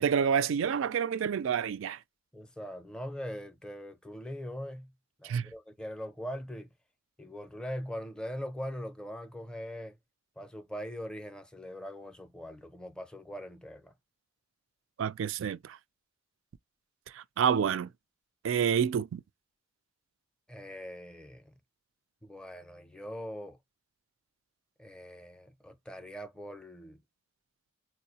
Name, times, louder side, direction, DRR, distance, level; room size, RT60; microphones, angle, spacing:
voice 1, 0.0-2.0 5.2-5.5 15.0-15.8 17.1-17.9 18.4-19.2, right 7 dB, 65° right, 0.3 m, -28 dB
voice 2, 2.3-4.9 5.2-6.7 7.2-10.0 10.4-13.9 20.5-21.5 22.2-23.6 24.8-27.0, equal, 5° left, 0.4 m, -41 dB
4.5 x 2.0 x 2.7 m
head